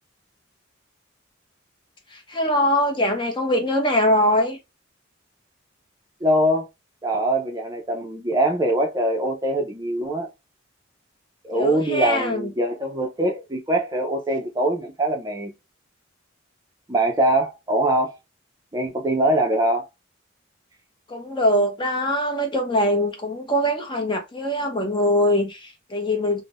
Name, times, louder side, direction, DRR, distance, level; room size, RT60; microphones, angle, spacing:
voice 1, 2.1-4.6 11.5-12.5 21.1-26.4, equal, 25° left, 0.7 m, -22 dB
voice 2, 6.2-6.7 7.0-10.3 11.4-15.5 16.9-18.2 18.7-19.9, right 1 dB, 20° right, 0.5 m, -23 dB
3.6 x 2.1 x 2.4 m
head